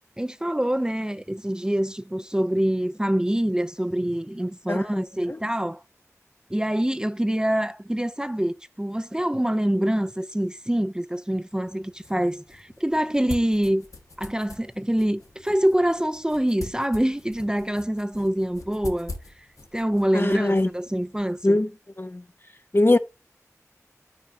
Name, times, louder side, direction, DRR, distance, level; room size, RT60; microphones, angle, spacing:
voice 1, 0.2-5.8 6.5-13.8 14.2-19.1 19.7-21.6, right 1 dB, 15° right, 0.6 m, -25 dB
voice 2, 4.7-5.0 5.3-5.4 20.1-20.7 21.4-21.7 22.0-22.2 22.7-23.0, left 2 dB, 40° left, 0.9 m, -21 dB
sound 1, 11.5-21.4, left 2 dB, 75° left, 1.6 m, -43 dB
12.5 x 4.8 x 2.7 m
wide cardioid pair, 45°, 6 cm